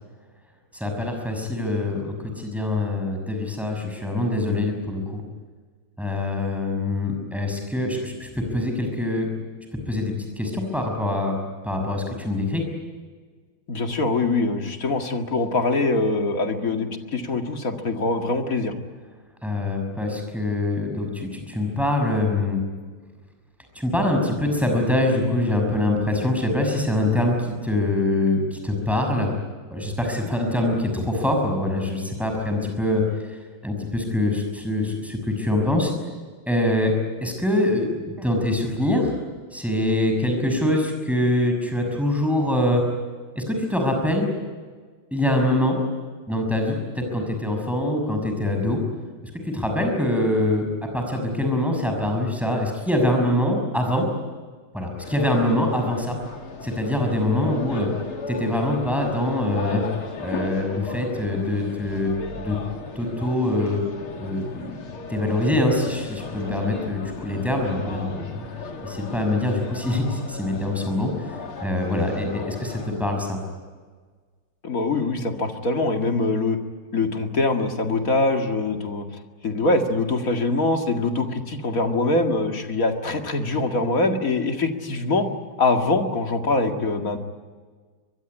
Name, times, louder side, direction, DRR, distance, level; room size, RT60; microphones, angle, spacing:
voice 1, 0.7-5.2 6.0-9.3 9.9-11.4 11.6-12.6 19.4-22.6 23.7-29.3 29.7-33.0 33.6-35.9 36.5-36.9 37.2-39.1 39.5-42.8 43.3-44.3 45.1-45.8 46.3-48.8 49.4-50.7 50.9-54.0 54.7-56.2 56.6-57.9 58.3-59.8 60.2-62.1 62.4-62.6 63.0-63.8 64.2-64.8 65.1-68.5 68.8-71.1 71.6-73.4, left 1 dB, ahead, 3 dB, 6.0 m, -24 dB
voice 2, 13.7-18.7 74.6-76.6 76.9-79.1 79.4-85.3 85.6-87.2, left 3 dB, 40° left, 4 dB, 2.4 m, -23 dB
sound 1, 55.0-73.0, left 4 dB, 90° left, 3.2 m, -36 dB
24.0 x 22.5 x 9.8 m, 1.5 s
omnidirectional pair, 2.3 m